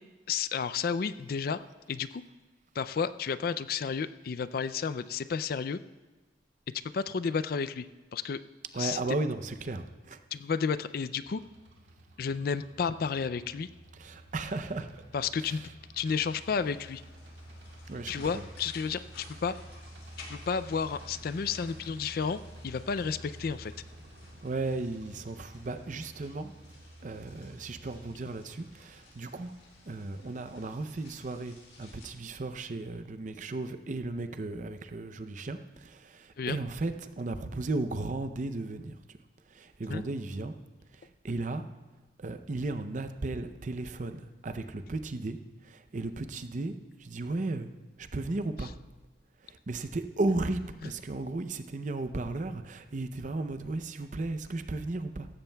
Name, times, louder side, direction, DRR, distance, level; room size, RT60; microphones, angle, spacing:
voice 1, 0.3-1.6 1.9-2.2 2.8-5.8 6.9-8.4 8.8-9.0 10.3-11.4 12.2-13.7 15.1-15.6 15.9-17.0 18.1-19.5 20.3-23.7 36.4-36.6 39.9-40.0, left 6 dB, 55° left, 13 dB, 0.4 m, -32 dB
voice 2, 8.7-10.2 13.9-15.0 15.4-15.7 17.9-18.4 24.4-26.5 27.0-29.5 29.8-39.2 39.5-40.5 40.9-41.6 42.2-45.4 45.6-46.7 47.0-47.7 48.0-48.7 49.4-55.3, right 2 dB, 45° right, 9 dB, 0.6 m, -35 dB
sound 1, 11.2-29.8, right 1 dB, 80° right, 1.9 m, -51 dB
sound 2, 16.0-32.1, left 2 dB, 80° left, 4.6 m, -55 dB
16.5 x 14.5 x 2.3 m, 1.2 s
head